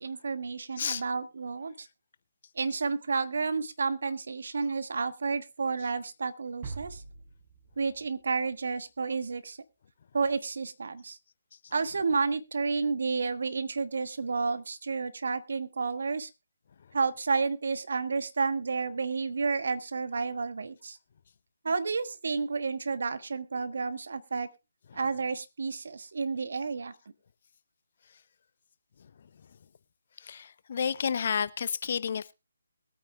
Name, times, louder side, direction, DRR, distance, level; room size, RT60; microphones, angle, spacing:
voice 1, 0.0-1.9 2.6-7.0 7.8-9.6 10.1-11.2 11.7-16.3 16.9-21.0 21.6-24.5 24.9-26.9, right 4 dB, 60° right, 1.3 m, -31 dB
sound 1, 6.6-8.7, right 4 dB, 30° right, 5.6 m, -44 dB
voice 2, 29.0-29.5 30.2-32.3, left 7 dB, 45° left, 0.7 m, -32 dB
22.0 x 8.9 x 2.4 m
figure-of-eight pair, 145°, 0 cm